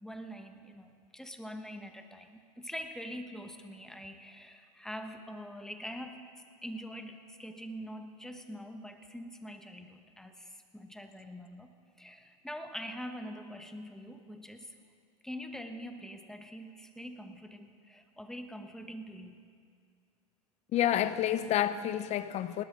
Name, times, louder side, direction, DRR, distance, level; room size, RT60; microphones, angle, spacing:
voice 1, 0.0-6.2 6.6-14.7 15.2-19.4, equal, 5° left, 6 dB, 1.2 m, -44 dB
voice 2, 20.7-22.6, left 11 dB, 35° left, 13 dB, 0.8 m, -29 dB
20.5 x 18.5 x 3.8 m, 2.3 s
hypercardioid pair, 110°, 20 cm